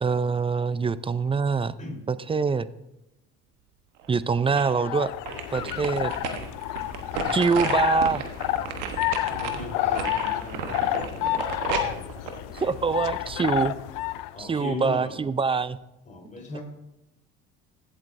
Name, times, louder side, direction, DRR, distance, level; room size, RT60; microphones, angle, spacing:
voice 1, 0.0-1.7 2.1-2.7 4.1-5.1 5.5-6.1 7.3-8.2 12.5-13.7 14.4-15.8, right 5 dB, 15° right, 16 dB, 0.4 m, -24 dB
sound 1, 4.0-4.8 5.3-13.3 13.7-13.8, right 7 dB, 85° right, 1.1 m, -34 dB
sound 2, 4.6-14.3, left 14 dB, 65° left, 0.5 m, -30 dB
voice 2, 5.6-6.0 9.3-11.4 14.3-15.2 16.1-16.6, left 2 dB, 20° left, -2 dB, 3.9 m, -38 dB
15.5 x 7.9 x 2.6 m, 0.92 s
supercardioid pair, 70°, 34 cm